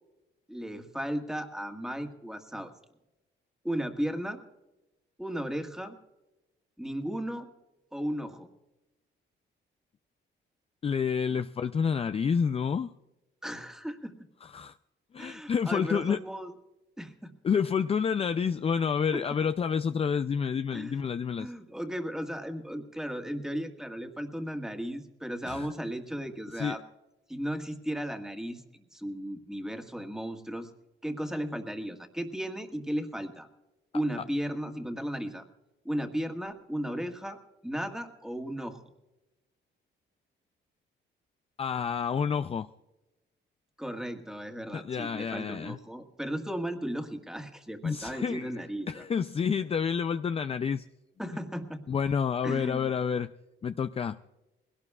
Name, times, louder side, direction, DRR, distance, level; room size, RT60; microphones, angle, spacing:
voice 1, 0.5-2.7 3.6-4.4 5.2-6.0 6.8-7.5 7.9-8.5 11.3-11.4 13.4-14.2 15.2-16.5 17.0-17.3 19.1-19.2 20.7-21.0 21.3-26.8 27.3-30.7 31.0-33.5 33.9-35.5 35.9-38.8 43.8-49.0 51.2-51.8 52.4-52.9, equal, 5° right, 5 dB, 1.8 m, -35 dB
voice 2, 10.8-12.9 14.4-14.8 15.1-16.2 17.4-21.5 25.5-25.7 26.5-26.8 41.6-42.7 44.7-45.8 47.8-50.9 51.9-53.3 53.6-54.2, left 6 dB, 30° left, 11 dB, 0.4 m, -29 dB
20.5 x 17.5 x 2.4 m, 0.99 s
cardioid pair, 90°, 20 cm